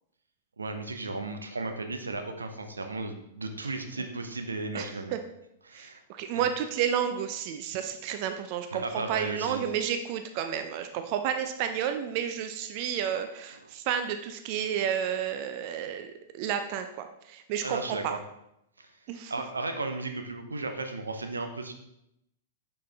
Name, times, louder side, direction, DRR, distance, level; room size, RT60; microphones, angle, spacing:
voice 1, 0.6-5.1 5.7-6.0 8.7-9.6 17.6-18.2 18.8-18.9 19.3-21.7, right 3 dB, 85° right, 6 dB, 0.8 m, -35 dB
voice 2, 3.6-4.1 4.7-5.2 5.7-18.2 19.1-19.3, right 9 dB, 50° right, 8 dB, 0.5 m, -31 dB
6.4 x 5.7 x 3.4 m, 0.81 s
figure-of-eight pair, 105°, 0 cm